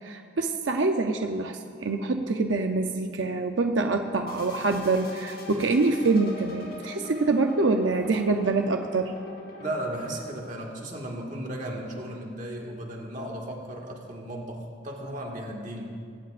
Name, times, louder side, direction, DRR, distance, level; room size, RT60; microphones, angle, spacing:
voice 1, 0.0-9.1, right 3 dB, 85° right, 5 dB, 0.7 m, -25 dB
sound 1, 4.3-10.2, left 2 dB, 55° left, 3.0 m, -42 dB
voice 2, 9.6-15.9, right 1 dB, 40° right, 0 dB, 1.9 m, -35 dB
21.5 x 17.0 x 2.5 m, 2.4 s
head